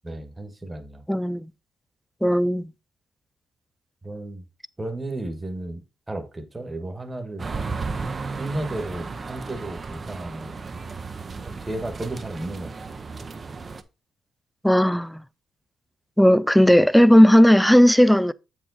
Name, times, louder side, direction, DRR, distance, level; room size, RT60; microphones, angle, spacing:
voice 1, 0.0-1.0 4.0-4.4 4.8-5.8 6.1-7.5 8.2-10.6 11.4-13.0, right 1 dB, 15° right, 1.3 m, -34 dB
voice 2, 1.1-1.5 2.2-2.7 14.6-15.2 16.2-18.3, equal, ahead, 0.3 m, -16 dB
sound 1, 7.4-13.8, right 4 dB, 35° right, 0.7 m, -34 dB
7.3 x 4.7 x 4.0 m
cardioid pair, 90°, 0 cm